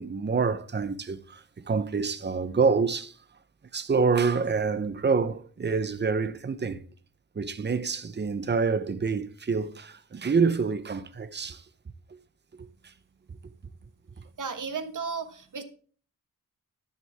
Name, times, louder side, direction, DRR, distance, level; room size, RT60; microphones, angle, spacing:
voice 1, 0.0-3.1 3.7-6.8 7.4-11.6, right 5 dB, 30° right, 0.7 m, -27 dB
voice 2, 14.4-15.6, right 5 dB, 60° right, 1.5 m, -34 dB
11.0 x 9.6 x 3.5 m
wide cardioid pair, 125°, 35 cm